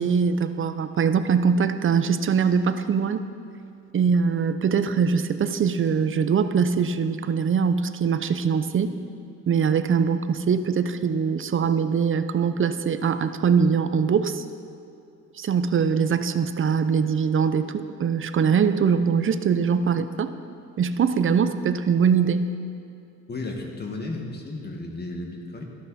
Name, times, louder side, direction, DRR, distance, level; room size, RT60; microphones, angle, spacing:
voice 1, 0.0-3.2 3.9-9.0 9.5-14.4 15.4-20.3 20.8-22.4, right 6 dB, 45° right, 11 dB, 0.7 m, -22 dB
voice 2, 23.3-25.6, left 2 dB, 35° left, 1 dB, 1.9 m, -33 dB
13.5 x 12.0 x 4.3 m, 2.6 s
cardioid pair, 90°, 30 cm